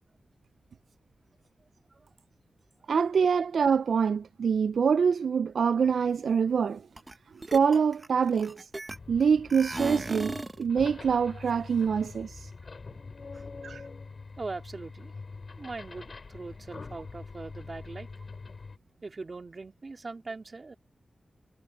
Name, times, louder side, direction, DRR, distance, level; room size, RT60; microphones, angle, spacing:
voice 1, 2.9-6.9 7.5-8.7 9.1-12.5 13.6-13.8, right 6 dB, 85° right, 0.3 m, -25 dB
sound 1, 7.0-7.1 7.4-9.2 9.5-10.6, right 2 dB, 25° right, 0.8 m, -36 dB
sound 2, 8.9-18.8, left 4 dB, 50° left, 6.7 m, -44 dB
voice 2, 14.4-15.1 15.6-18.1 19.0-20.7, right 3 dB, 40° right, 3.2 m, -41 dB
wide cardioid pair, 95°, 0 cm